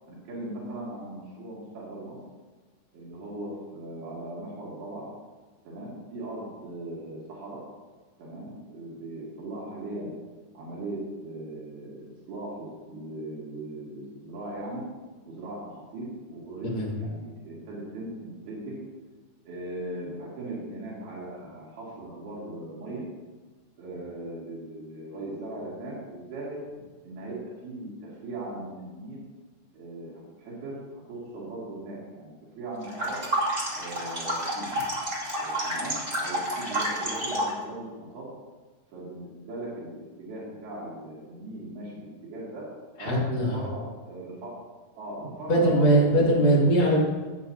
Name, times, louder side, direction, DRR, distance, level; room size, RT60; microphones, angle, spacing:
voice 1, 0.3-2.2 2.9-5.0 5.7-7.6 8.2-10.1 10.5-12.0 12.3-14.8 15.3-18.7 19.5-23.0 23.8-26.6 27.0-29.2 29.7-30.1 30.4-32.3 32.6-33.3 33.7-34.7 35.3-38.3 38.9-42.7 43.0-44.5 45.0-46.4, right 2 dB, 80° right, -7 dB, 4.5 m, -38 dB
sound 1, 32.8-37.6, right 1 dB, 15° right, 1.7 m, -30 dB
voice 2, 43.0-43.6 45.5-47.0, right 1 dB, 50° left, -4 dB, 3.4 m, -21 dB
16.0 x 9.3 x 2.8 m, 1.3 s
omnidirectional pair, 4.4 m